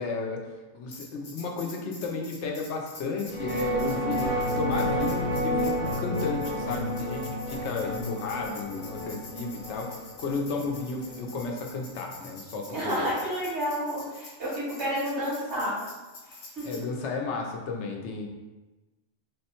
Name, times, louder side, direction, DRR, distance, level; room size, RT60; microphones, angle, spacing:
voice 1, 0.0-13.1 16.6-18.3, left 4 dB, 75° left, 1 dB, 0.9 m, -33 dB
Tambourine, 0.9-16.8, left 2 dB, 45° left, 0.7 m, -47 dB
sound 1, 3.2-11.9, equal, 5° right, 0.7 m, -31 dB
sound 2, 3.9-9.8, left 2 dB, 30° right, 0.9 m, -45 dB
voice 2, 12.7-15.8 16.2-16.8, equal, 75° right, -8 dB, 1.9 m, -30 dB
3.6 x 2.1 x 4.2 m, 1.1 s
omnidirectional pair, 1.2 m